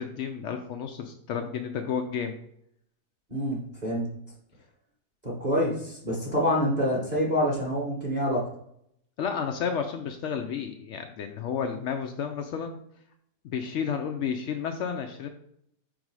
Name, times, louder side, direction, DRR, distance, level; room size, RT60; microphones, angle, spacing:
voice 1, 0.0-2.4 9.2-12.8 13.4-15.3, left 7 dB, 85° left, 5 dB, 0.6 m, -31 dB
voice 2, 3.3-4.0 5.2-8.4, equal, 30° right, -3 dB, 1.0 m, -26 dB
5.2 x 3.9 x 4.7 m, 0.73 s
omnidirectional pair, 1.8 m